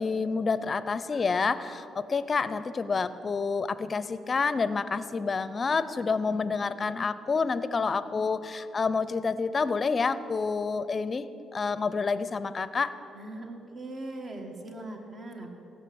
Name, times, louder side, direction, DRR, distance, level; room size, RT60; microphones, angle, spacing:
voice 1, 0.0-11.3 11.5-13.0, left 4 dB, 35° left, 14 dB, 0.6 m, -28 dB
voice 2, 13.1-15.5, right 2 dB, 45° right, 3 dB, 1.9 m, -40 dB
15.5 x 6.5 x 8.7 m, 3.0 s
cardioid pair, 90°, 0 cm